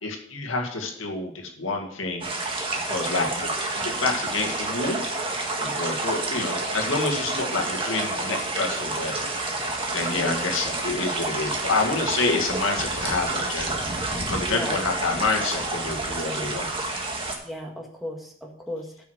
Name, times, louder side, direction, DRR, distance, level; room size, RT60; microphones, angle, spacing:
voice 1, 0.0-2.3 2.8-3.5 3.8-5.0 5.6-9.3 9.9-16.7, left 3 dB, 70° left, 2 dB, 2.0 m, -28 dB
sound 1, 2.2-17.4, right 2 dB, 25° right, 1.6 m, -29 dB
voice 2, 17.4-19.0, equal, ahead, 0 dB, 1.7 m, -35 dB
9.0 x 6.3 x 6.5 m, 0.62 s
head